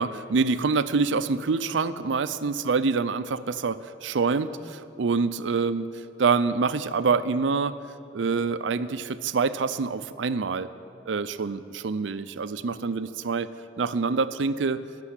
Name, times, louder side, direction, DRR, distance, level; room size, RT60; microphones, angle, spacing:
voice 1, 0.0-7.8 8.1-10.7 11.1-13.5 13.8-14.8, right 4 dB, 85° right, 13 dB, 0.5 m, -26 dB
14.5 x 6.8 x 9.9 m, 2.6 s
head